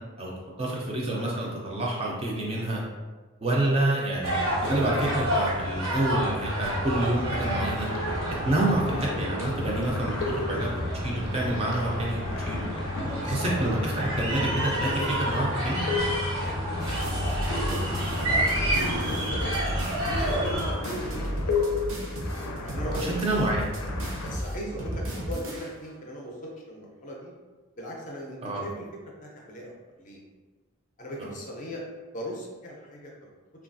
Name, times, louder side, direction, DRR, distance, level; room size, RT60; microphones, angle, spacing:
voice 1, 0.6-2.8 3.4-7.9 8.4-12.7 13.2-15.8 22.9-23.7 28.4-28.6, right 1 dB, 25° right, -3 dB, 0.4 m, -28 dB
sound 1, 4.2-20.7, equal, 85° right, 1.2 m, -29 dB
sound 2, 7.8-24.4, left 3 dB, 90° left, 0.5 m, -35 dB
voice 2, 13.1-13.4 16.4-21.8 22.6-23.3 24.2-27.3 27.8-28.9 29.2-29.7 30.0-30.2 31.0-31.8 32.1-33.3, equal, 35° left, -2 dB, 0.5 m, -39 dB
sound 3, 16.8-25.9, equal, 70° right, 0.6 m, -34 dB
3.2 x 2.3 x 2.5 m, 1.3 s
head